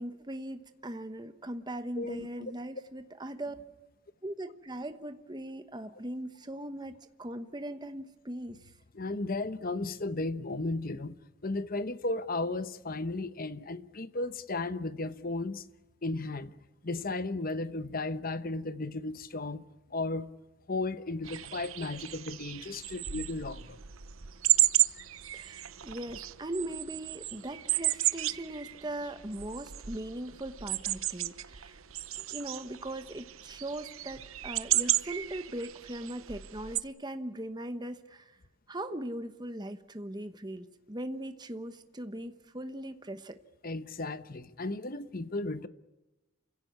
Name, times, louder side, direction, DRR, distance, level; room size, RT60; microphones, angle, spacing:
voice 1, 0.0-3.6 4.2-8.7 25.3-31.8 32.2-38.4 38.7-43.4, right 1 dB, 20° right, 1.1 m, -40 dB
voice 2, 2.0-2.5 8.9-11.2 11.4-15.6 16.0-16.5 16.8-19.6 19.9-20.3 20.7-23.8 43.6-45.7, left 2 dB, 45° left, 1.0 m, -34 dB
sound 1, 21.2-36.8, right 14 dB, 75° right, 0.9 m, -33 dB
28.5 x 16.5 x 9.5 m
head